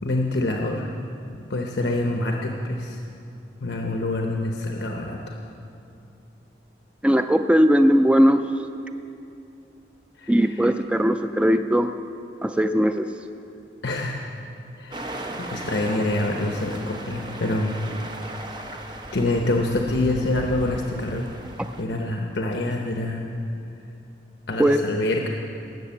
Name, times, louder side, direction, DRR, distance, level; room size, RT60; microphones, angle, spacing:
voice 1, 0.0-0.9 1.5-3.0 3.6-5.4 10.2-10.7 13.8-14.2 14.8-15.1 15.4-17.8 18.7-21.3 21.8-23.2 24.5-25.3, left 2 dB, 70° left, 2 dB, 0.9 m, -26 dB
voice 2, 7.0-8.4 10.3-11.9 12.4-13.1 24.6-24.8, equal, 5° right, 8 dB, 0.3 m, -19 dB
sound 1, 14.9-21.8, right 1 dB, 25° right, 0.8 m, -36 dB
18.5 x 7.7 x 7.2 m, 2.7 s
head